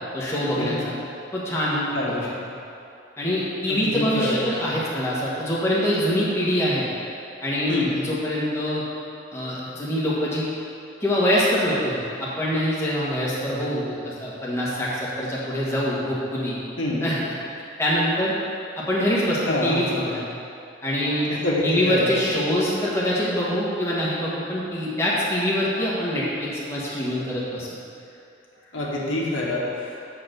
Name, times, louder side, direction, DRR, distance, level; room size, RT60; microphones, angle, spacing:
voice 1, 0.1-0.9 1.3-2.3 3.2-6.9 7.4-8.8 9.3-10.5 11.0-16.6 17.0-17.3 17.8-18.3 18.8-20.2 20.8-21.3 21.6-27.7, equal, 15° left, -7 dB, 1.3 m, -24 dB
voice 2, 3.7-4.4 7.7-7.9 16.8-17.0 19.5-19.8 21.3-22.1 28.7-30.1, left 1 dB, 85° left, -5 dB, 1.6 m, -26 dB
7.5 x 4.4 x 6.6 m, 2.7 s
head